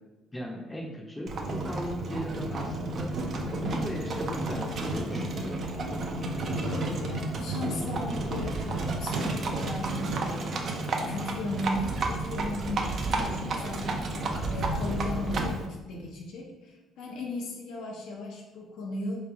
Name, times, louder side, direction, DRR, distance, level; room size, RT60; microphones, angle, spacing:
voice 1, 0.3-3.1 3.6-5.6, equal, 10° left, 0 dB, 0.7 m, -37 dB
Livestock farm animals working animals, 1.3-15.7, right 2 dB, 45° right, 0.5 m, -31 dB
voice 2, 6.4-19.2, left 2 dB, 75° left, -1 dB, 0.8 m, -37 dB
3.8 x 3.1 x 3.5 m, 1.1 s
cardioid pair, 135°, 0 cm